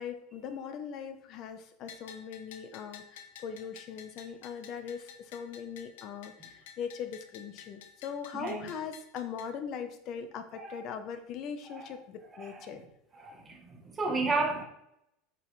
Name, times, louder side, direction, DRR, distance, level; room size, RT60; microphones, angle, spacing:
voice 1, 0.0-12.8, left 7 dB, 45° left, 0.9 m, -40 dB
Bell, 1.9-9.5, left 8 dB, 90° left, 1.0 m, -52 dB
voice 2, 8.3-8.7 10.6-10.8 11.7-11.9 12.3-12.8 13.2-14.6, right 3 dB, 20° right, 1.3 m, -33 dB
8.5 x 5.5 x 3.3 m
supercardioid pair, 145°, 0 cm